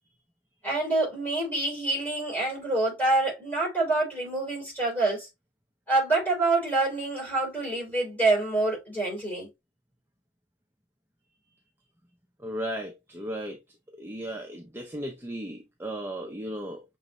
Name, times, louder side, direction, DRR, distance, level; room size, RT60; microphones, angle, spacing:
voice 1, 0.6-5.3 5.9-9.5, right 2 dB, 10° left, 3.4 m, -26 dB
voice 2, 12.4-13.6 13.9-16.8, right 1 dB, 10° right, 0.6 m, -35 dB
6.5 x 3.1 x 2.5 m
head